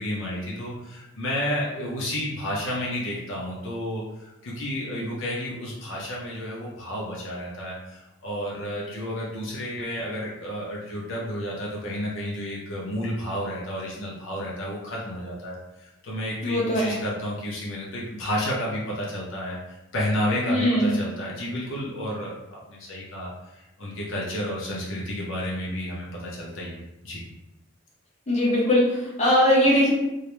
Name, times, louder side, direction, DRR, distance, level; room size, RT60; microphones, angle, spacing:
voice 1, 0.0-27.2, equal, 70° left, -4 dB, 0.5 m, -31 dB
voice 2, 16.4-16.9 20.5-20.9 28.3-29.9, equal, 35° left, -6 dB, 0.7 m, -20 dB
2.3 x 2.0 x 2.9 m, 0.96 s
head